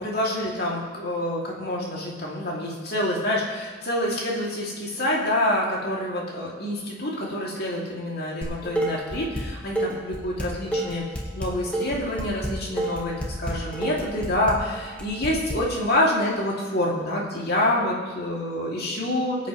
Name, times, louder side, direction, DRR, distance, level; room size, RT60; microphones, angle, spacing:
voice 1, 0.0-11.1 11.3-19.5, left 1 dB, 55° left, -4 dB, 2.6 m, -27 dB
Dishes pots and pans, 8.4-9.4 9.8-15.6, right 1 dB, 5° left, 1.4 m, -29 dB
20.0 x 8.4 x 3.1 m, 1.4 s
head